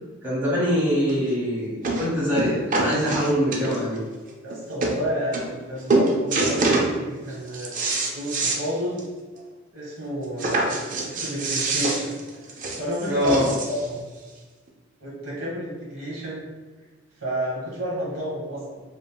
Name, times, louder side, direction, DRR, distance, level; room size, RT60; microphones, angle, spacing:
voice 1, 0.2-4.0 13.1-13.5, equal, 10° right, -9 dB, 1.0 m, -23 dB
sound 1, 1.1-1.2 1.8-2.1 2.4-4.0 4.5-4.6 4.8-5.0 5.3-5.6 5.9-6.9 7.3-8.6 9.0-9.1 9.4-9.5 10.4-13.9 14.7-14.8, right 2 dB, 40° right, 0.3 m, -25 dB
voice 2, 4.4-7.7 8.1-9.0 9.7-12.1 12.8-14.0 15.0-16.5 17.2-18.8, equal, 65° right, -6 dB, 1.1 m, -30 dB
3.7 x 2.1 x 2.2 m, 1.3 s
head